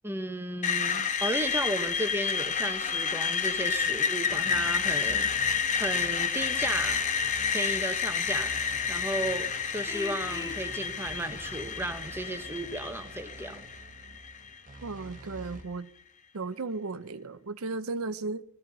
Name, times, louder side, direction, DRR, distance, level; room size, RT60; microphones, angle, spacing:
voice 1, 0.0-5.3 5.7-7.1 7.5-8.6 8.9-13.6, right 1 dB, 10° right, 7 dB, 1.1 m, -34 dB
Screech, 0.6-14.6, left 6 dB, 35° left, 1.0 m, -30 dB
sound 1, 3.7-15.6, right 2 dB, 35° right, 1.2 m, -47 dB
Vehicle horn car horn honking, 9.9-10.7, left 4 dB, 15° left, 0.9 m, -40 dB
voice 2, 14.8-15.9 16.3-18.4, right 3 dB, 65° right, 12 dB, 0.7 m, -35 dB
17.5 x 14.5 x 4.1 m, 0.68 s
head